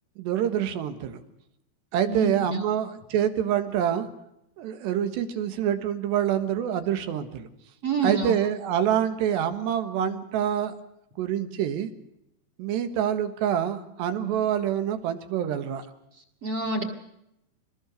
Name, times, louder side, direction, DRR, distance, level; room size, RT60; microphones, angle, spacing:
voice 1, 0.2-1.2 1.9-4.1 4.6-7.5 8.0-10.7 11.2-11.9 12.6-15.8, right 10 dB, 85° right, 9 dB, 3.7 m, -26 dB
voice 2, 2.1-2.7 7.8-8.3 16.4-16.8, right 3 dB, 40° right, 2 dB, 2.5 m, -27 dB
25.0 x 20.5 x 6.5 m, 0.83 s
omnidirectional pair, 4.9 m